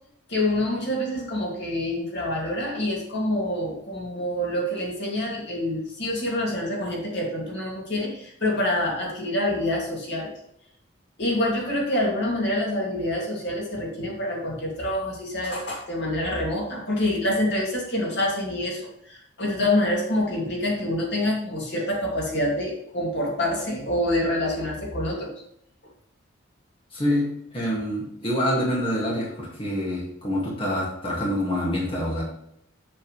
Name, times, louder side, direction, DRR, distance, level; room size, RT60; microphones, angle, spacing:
voice 1, 0.3-10.3 11.2-25.3, left 1 dB, 55° left, -2 dB, 2.6 m, -26 dB
voice 2, 26.9-27.3 27.5-32.2, equal, 25° left, -5 dB, 2.2 m, -26 dB
7.7 x 7.5 x 3.3 m, 0.74 s
head